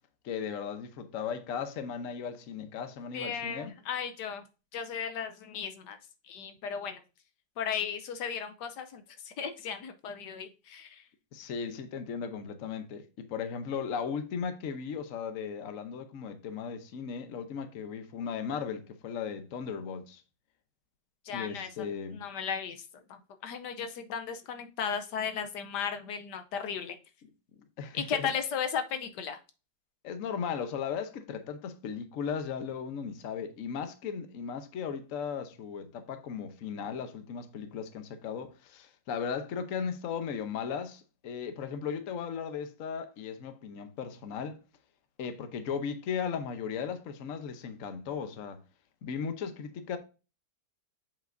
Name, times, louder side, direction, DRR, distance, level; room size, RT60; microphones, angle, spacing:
voice 1, 0.2-3.7 11.3-20.2 21.3-22.3 27.8-28.3 30.0-44.6 45.2-48.6 49.0-50.0, left 6 dB, 55° left, 1.1 m, -36 dB
voice 2, 3.1-4.4 4.7-6.0 6.3-7.0 7.6-11.0 21.2-21.7 22.1-22.8 23.4-27.0 27.9-29.4, left 7 dB, 75° left, 1.3 m, -35 dB
7.4 x 5.4 x 2.6 m
omnidirectional pair, 1.8 m